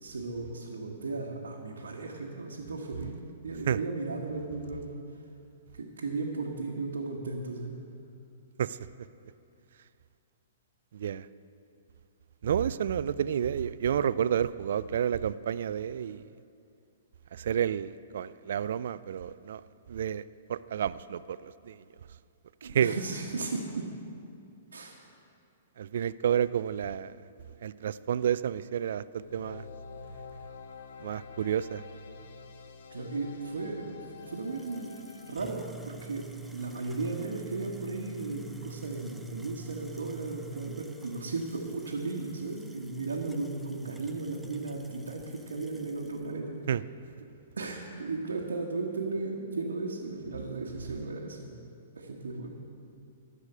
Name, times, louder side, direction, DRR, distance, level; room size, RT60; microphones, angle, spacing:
voice 1, 0.0-4.9 5.8-7.7 22.6-23.9 24.7-24.9 32.9-33.9 34.2-35.0 35.3-36.3 36.5-46.6 47.6-51.6 52.0-52.5, right 3 dB, 90° right, -3 dB, 1.2 m, -35 dB
voice 2, 10.9-11.3 12.4-16.2 17.3-19.6 19.9-20.2 20.5-21.8 22.6-23.0 25.8-27.1 27.6-29.7 31.0-31.8 46.7-46.8, right 9 dB, 70° right, 17 dB, 0.3 m, -30 dB
sound 1, 29.1-35.3, left 4 dB, 65° left, 0.9 m, -47 dB
sound 2, 34.2-46.3, right 4 dB, 5° right, 0.5 m, -49 dB
13.0 x 4.9 x 8.5 m, 2.5 s
hypercardioid pair, 130°, 0 cm